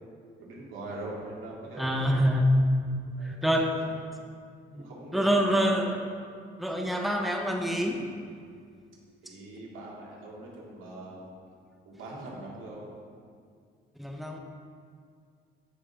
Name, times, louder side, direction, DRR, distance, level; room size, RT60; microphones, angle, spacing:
voice 1, 0.4-2.3 3.2-3.5 4.7-5.8 9.2-11.2 11.8-12.9, right 2 dB, 90° right, -4 dB, 2.6 m, -42 dB
voice 2, 1.8-2.6 3.2-3.8 4.7-6.0 6.6-8.1 9.3-9.4 14.0-14.4, equal, ahead, 2 dB, 1.0 m, -26 dB
15.5 x 6.3 x 3.7 m, 2.2 s
cardioid pair, 90°, 20 cm